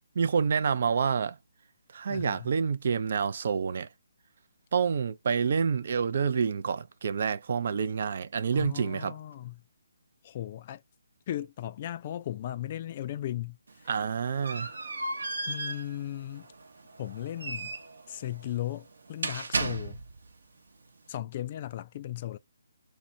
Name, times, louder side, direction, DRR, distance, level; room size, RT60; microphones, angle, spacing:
voice 1, 0.2-1.4 1.9-3.9 4.7-9.2 13.9-14.7, right 6 dB, 55° right, 0.4 m, -28 dB
voice 2, 2.1-2.5 8.5-9.6 10.2-10.8 11.3-13.9 15.5-16.5 17.0-17.7 18.1-20.0 21.1-22.4, left 12 dB, 40° left, 0.3 m, -36 dB
sound 1, 13.7-20.3, right 2 dB, 70° right, 0.8 m, -36 dB
2.6 x 2.1 x 2.7 m
figure-of-eight pair, 150°, 0 cm